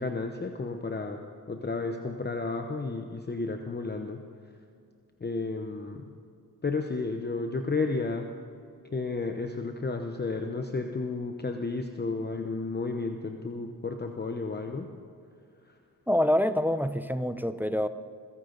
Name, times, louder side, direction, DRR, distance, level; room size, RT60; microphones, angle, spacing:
voice 1, 0.0-4.2 5.2-6.1 6.6-8.3 8.9-14.9, left 3 dB, 25° left, 4 dB, 0.9 m, -32 dB
voice 2, 16.1-17.9, left 1 dB, 5° right, 12 dB, 0.6 m, -26 dB
21.0 x 15.5 x 4.0 m, 2.3 s
cardioid pair, 85°, 38 cm